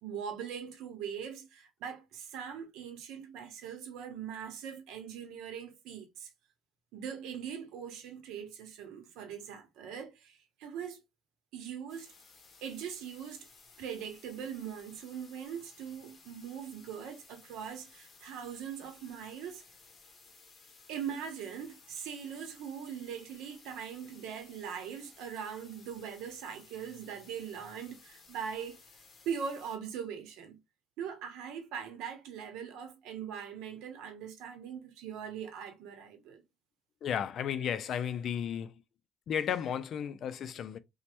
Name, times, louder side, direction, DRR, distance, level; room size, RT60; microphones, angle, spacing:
voice 1, 0.0-6.3 6.9-11.0 11.5-12.1 12.6-13.5 13.8-19.6 20.9-28.8 29.2-30.6 31.0-36.4, right 7 dB, 90° right, 0.7 m, -41 dB
sound 1, 11.9-29.8, left 4 dB, 35° left, 0.8 m, -58 dB
voice 2, 37.0-38.7 39.3-40.8, left 8 dB, 50° left, 0.3 m, -33 dB
3.1 x 2.1 x 2.8 m
cardioid pair, 150°, 0 cm